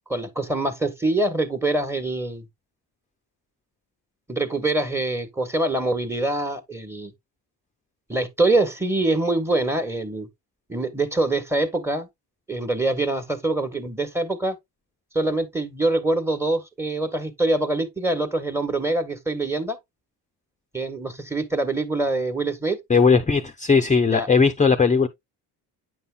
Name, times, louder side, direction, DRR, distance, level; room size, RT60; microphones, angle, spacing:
voice 1, 0.1-2.5 4.3-7.1 8.1-10.3 10.7-12.1 12.5-14.6 15.1-19.8 20.7-22.8 24.1-24.3, right 2 dB, 5° right, 1.4 m, -24 dB
voice 2, 22.9-25.1, left 5 dB, 15° left, 0.7 m, -18 dB
9.4 x 5.4 x 2.3 m
cardioid pair, 95°, 42 cm